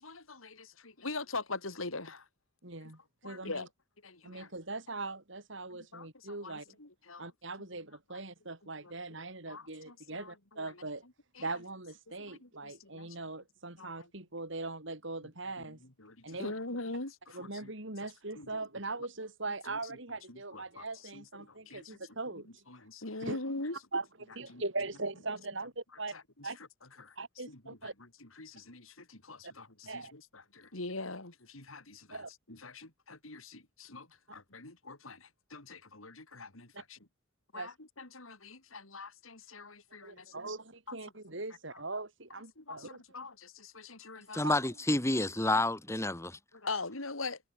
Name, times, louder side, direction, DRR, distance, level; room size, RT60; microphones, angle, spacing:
voice 1, 0.0-2.2 3.2-3.7 4.0-4.5 5.9-7.3 9.5-10.7 11.4-11.5 12.3-13.2 13.8-13.9 16.0-17.7 18.4-18.5 20.3-20.8 21.1-22.0 22.7-23.8 24.5-24.6 26.1-26.2 27.0-27.1 27.5-27.6 28.2-30.2 30.5-32.2 32.5-37.0 37.5-40.3 40.9-41.0 42.6-44.5 46.5-47.4, left 3 dB, 85° left, 4.5 m, -43 dB
voice 2, 2.6-3.7 4.2-6.6 7.2-11.0 11.4-15.8 16.2-16.5 17.3-22.6 23.2-26.1 26.4-26.6 27.2-27.9 29.4-29.5 29.9-30.1 32.1-32.3 36.7-36.8 37.5-37.7 40.0-43.2 44.4-44.6, right 3 dB, 65° right, 4.4 m, -41 dB
voice 3, 44.3-46.4, left 2 dB, 15° left, 2.0 m, -29 dB
head